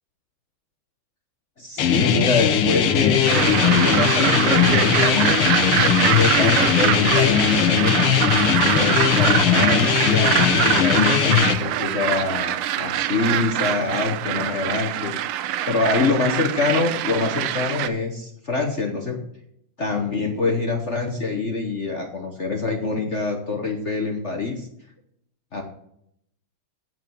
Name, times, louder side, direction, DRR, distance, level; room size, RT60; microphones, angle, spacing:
voice 1, 1.6-5.4 5.9-8.1 8.7-19.2 19.8-24.7 25.5-25.6, left 3 dB, 40° left, 2 dB, 1.1 m, -25 dB
sound 1, 1.8-11.5, left 8 dB, 85° left, 1.8 m, -19 dB
sound 2, 3.3-17.9, right 12 dB, 85° right, 1.5 m, -24 dB
9.2 x 5.8 x 7.1 m, 0.73 s
omnidirectional pair, 2.3 m